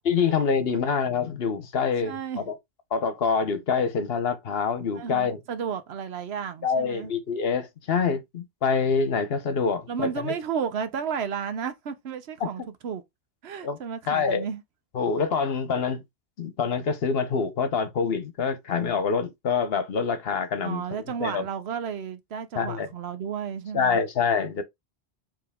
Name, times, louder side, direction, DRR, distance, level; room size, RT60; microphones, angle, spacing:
voice 1, 0.0-2.2 2.5-2.6 2.9-5.4 6.6-10.3 12.4-12.5 13.6-13.8 14.1-14.4 14.9-16.0 16.4-20.8 21.2-21.4 22.5-22.9 23.7-24.6, left 5 dB, 65° left, 1.0 m, -26 dB
voice 2, 2.0-2.5 5.0-7.1 9.9-13.0 13.4-14.6 20.6-24.0, right 7 dB, 70° right, 1.0 m, -33 dB
4.8 x 2.9 x 3.5 m
omnidirectional pair, 1.1 m